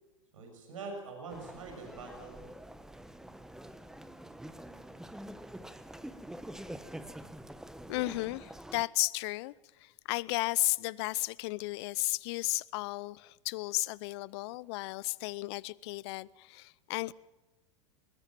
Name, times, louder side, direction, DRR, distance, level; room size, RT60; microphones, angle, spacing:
voice 1, 0.3-2.4, right 3 dB, 70° right, 6.8 m, -44 dB
sound 1, 1.3-8.8, right 1 dB, 5° right, 1.1 m, -46 dB
voice 2, 7.9-17.1, left 22 dB, 55° left, 0.6 m, -34 dB
21.5 x 20.0 x 7.5 m
hypercardioid pair, 95°, 17 cm